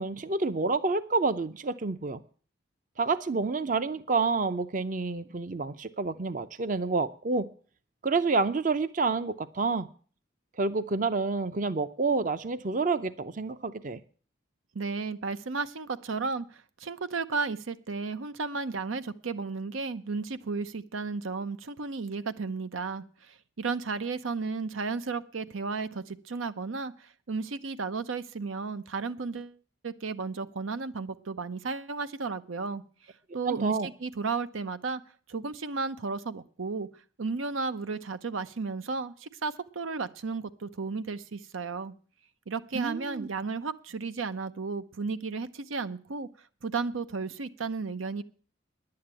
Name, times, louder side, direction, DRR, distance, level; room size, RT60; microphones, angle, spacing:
voice 1, 0.0-2.2 3.0-7.4 8.0-9.9 10.6-14.0 33.4-33.9 42.7-43.3, right 4 dB, 40° right, 13 dB, 0.6 m, -28 dB
voice 2, 14.7-29.6 29.8-32.8 33.3-35.0 35.3-36.9 37.2-41.9 42.5-46.3 46.6-48.2, right 4 dB, 90° right, 12 dB, 0.8 m, -33 dB
10.5 x 8.7 x 8.8 m, 0.43 s
head